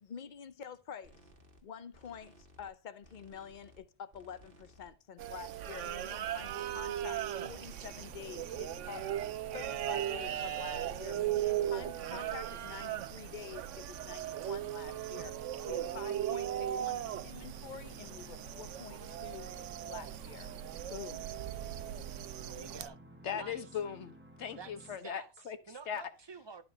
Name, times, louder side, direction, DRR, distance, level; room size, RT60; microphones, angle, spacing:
voice 1, 0.0-1.2 1.6-9.1 9.5-15.3 15.7-19.5 19.8-20.5 20.9-21.3, left 7 dB, 45° left, 0.8 m, -48 dB
sound 1, 1.0-1.6 1.9-2.7 3.0-3.8 4.1-4.9 5.2-6.0 6.3-7.1 7.4-8.2 8.5-9.3 9.6-10.4 10.7-11.3, equal, 50° right, 1.8 m, -60 dB
sound 2, 5.2-22.9, right 11 dB, 85° right, 1.0 m, -38 dB
sound 3, 7.1-25.0, equal, 10° right, 1.2 m, -55 dB
voice 2, 22.5-23.0 23.3-23.6 24.6-24.7 25.0-25.3 25.7-26.6, right 5 dB, 30° right, 0.6 m, -48 dB
voice 3, 23.2-25.6 25.9-26.0, left 8 dB, 70° left, 1.3 m, -39 dB
12.0 x 5.2 x 4.1 m
omnidirectional pair, 1.2 m